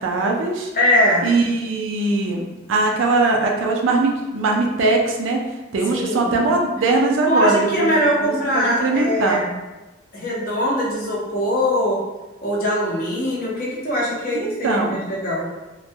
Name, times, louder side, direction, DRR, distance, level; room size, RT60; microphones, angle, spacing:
voice 1, 0.0-0.7 1.2-2.4 2.7-5.4 5.7-7.9 8.2-9.4 14.3-15.0, right 3 dB, 85° right, 0 dB, 0.4 m, -20 dB
voice 2, 0.7-1.3 5.9-6.3 7.3-9.5 10.1-12.0 12.4-15.5, equal, 45° left, -5 dB, 0.7 m, -21 dB
2.2 x 2.1 x 2.7 m, 1.1 s
head